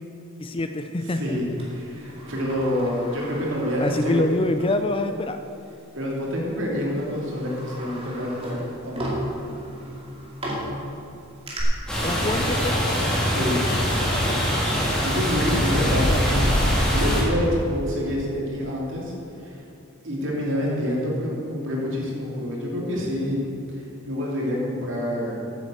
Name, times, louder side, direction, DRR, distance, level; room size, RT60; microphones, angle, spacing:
voice 1, 0.4-1.4 3.8-5.4 12.0-13.4 13.9-14.2 15.9-16.4, left 2 dB, 25° left, 8 dB, 0.4 m, -26 dB
voice 2, 1.0-4.2 5.9-9.1 13.3-13.6 15.0-16.5 16.9-19.6 20.0-23.4 23.7-25.4, equal, 60° right, -3 dB, 2.9 m, -27 dB
Sliding door, 1.6-4.8 5.2-5.3 6.2-6.4 6.9-11.6, equal, 25° right, 2.4 m, -36 dB
sound 1, 11.9-17.2, equal, 5° left, 2.5 m, -22 dB
9.3 x 8.4 x 7.8 m, 2.6 s
head